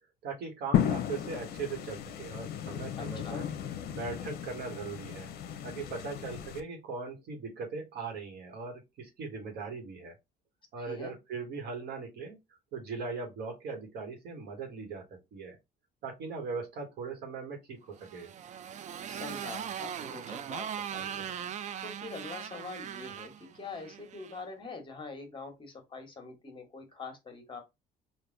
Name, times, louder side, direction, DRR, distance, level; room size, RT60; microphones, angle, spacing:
voice 1, 0.2-3.5 3.9-5.3 5.6-10.1 10.7-12.4 12.7-15.6 16.0-18.3, right 4 dB, 75° right, 1.4 m, -39 dB
sound 1, 0.7-6.6, left 10 dB, 65° left, 0.6 m, -34 dB
voice 2, 2.9-3.4 10.8-11.2 19.1-21.4 21.8-27.6, left 4 dB, 30° left, 1.2 m, -44 dB
Motorcycle, 18.0-24.4, right 9 dB, 45° right, 0.4 m, -40 dB
3.4 x 2.5 x 3.8 m
cardioid pair, 110°, 17 cm